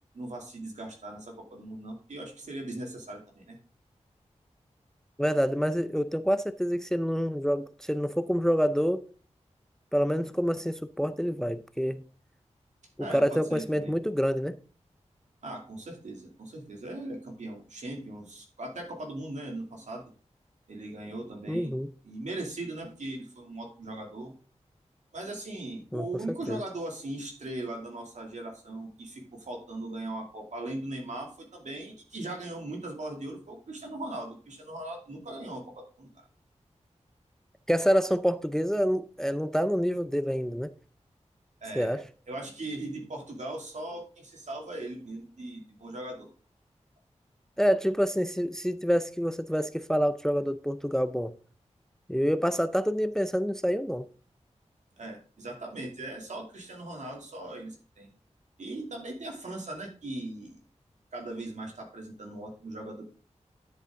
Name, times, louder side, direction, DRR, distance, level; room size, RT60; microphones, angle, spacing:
voice 1, 0.1-3.6 13.0-14.0 15.4-20.0 20.7-21.7 22.0-24.3 25.1-36.1 41.6-46.3 55.0-58.1 58.6-60.6 61.1-63.0, right 2 dB, 80° right, 2.6 m, -39 dB
voice 2, 5.2-9.0 9.9-12.0 13.0-14.6 21.5-21.9 25.9-26.1 26.5-26.6 37.7-40.7 41.8-42.0 47.6-51.3 52.1-54.0, equal, 5° left, 0.5 m, -27 dB
10.0 x 8.0 x 3.7 m
wide cardioid pair, 100°, 12 cm